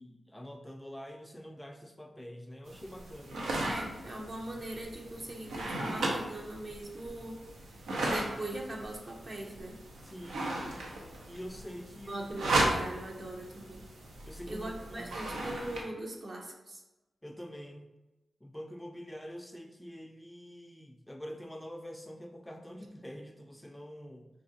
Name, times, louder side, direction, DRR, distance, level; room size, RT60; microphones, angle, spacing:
voice 1, 0.0-3.4 10.0-10.6 11.3-12.2 14.3-15.4 17.2-17.9 18.4-24.3, equal, 10° left, 4 dB, 0.4 m, -46 dB
sound 1, 2.7-15.8, right 1 dB, 90° right, 0.5 m, -36 dB
voice 2, 3.6-7.4 8.0-9.8 12.1-13.9 14.5-16.8, right 1 dB, 55° right, 0 dB, 0.8 m, -41 dB
4.0 x 2.6 x 2.6 m, 1.0 s
supercardioid pair, 40°, 0 cm